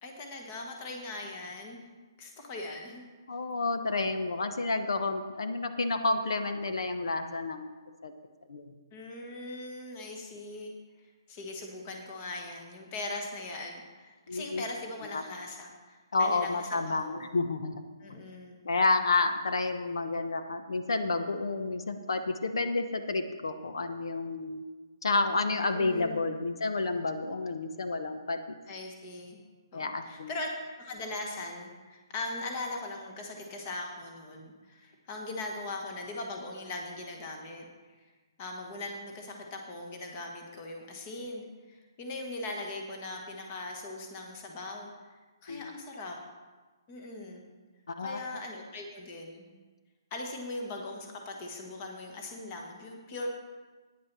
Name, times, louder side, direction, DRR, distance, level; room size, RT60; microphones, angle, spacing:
voice 1, 0.0-1.8 2.2-3.0 8.9-10.7 11.0-17.3 18.0-18.6 25.3-26.3 28.7-29.4 29.7-30.5 30.8-37.6 38.4-46.2 46.9-47.5 48.0-49.6 50.1-53.3, left 2 dB, 20° left, 2 dB, 1.2 m, -40 dB
voice 2, 3.3-7.7 8.0-8.1 8.5-8.7 14.3-14.6 15.1-15.2 16.1-17.8 18.1-18.2 18.6-24.6 25.0-28.4 29.7-30.3 45.5-45.8 47.9-48.2, left 3 dB, 80° left, 8 dB, 1.0 m, -30 dB
9.6 x 8.4 x 6.0 m, 1.3 s
hypercardioid pair, 175°, 2 cm